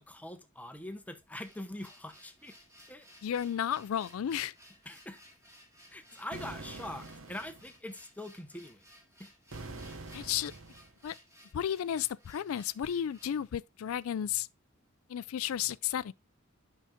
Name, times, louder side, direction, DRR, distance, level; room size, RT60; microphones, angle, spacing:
voice 1, 0.0-2.6 2.9-3.1 4.8-5.2 5.9-8.8 9.2-9.3, left 1 dB, 5° left, 0.8 m, -43 dB
sound 1, 1.2-13.5, equal, 15° right, 2.2 m, -59 dB
voice 2, 3.2-4.5 10.1-10.5 11.0-11.2 11.5-14.5 15.1-16.1, left 10 dB, 85° left, 0.4 m, -33 dB
sound 2, 6.3-7.7 9.5-10.9, right 2 dB, 75° right, 1.1 m, -45 dB
8.3 x 5.7 x 3.5 m
head